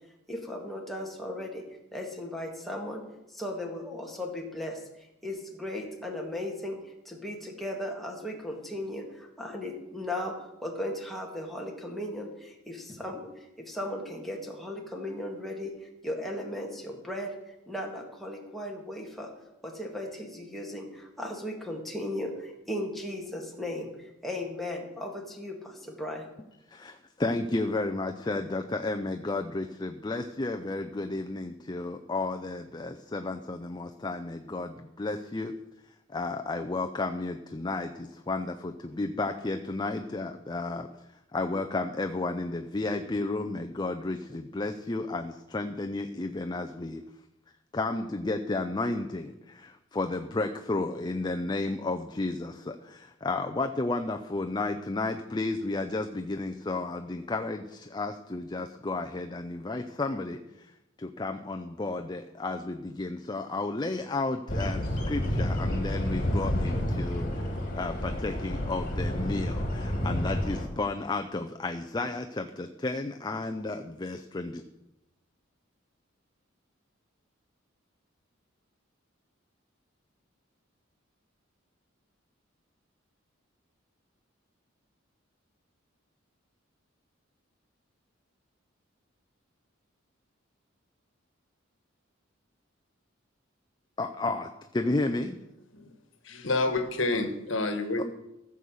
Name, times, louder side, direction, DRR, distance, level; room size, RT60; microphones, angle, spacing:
voice 1, 0.3-1.6 1.9-3.0 3.3-6.8 7.1-19.3 19.6-26.3, left 1 dB, ahead, -1 dB, 2.0 m, -37 dB
voice 2, 26.7-35.5 36.1-47.0 47.7-60.7 61.0-74.6 94.0-94.5 94.7-95.4 98.0-98.1, left 2 dB, 20° left, 5 dB, 0.6 m, -32 dB
sound 1, 64.5-70.7, left 1 dB, 45° left, 2.5 m, -30 dB
voice 3, 96.2-98.0, left 2 dB, 70° left, 7 dB, 1.4 m, -28 dB
15.0 x 7.0 x 6.4 m, 0.91 s
head